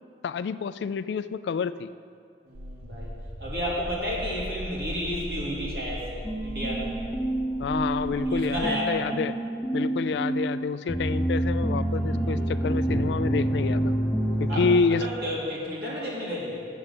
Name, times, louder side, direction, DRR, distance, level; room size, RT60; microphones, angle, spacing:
voice 1, 0.2-1.9 7.6-9.3 9.7-13.9 14.4-15.0, left 5 dB, 75° left, 14 dB, 0.3 m, -28 dB
voice 2, 2.4-3.1 3.4-7.0 8.3-9.0 14.5-16.7, equal, 60° right, -5 dB, 2.6 m, -32 dB
sound 1, 2.5-8.7, equal, 15° right, 0.6 m, -38 dB
sound 2, 6.2-14.8, right 1 dB, 5° left, 1.0 m, -27 dB
8.5 x 7.3 x 6.6 m, 2.3 s
head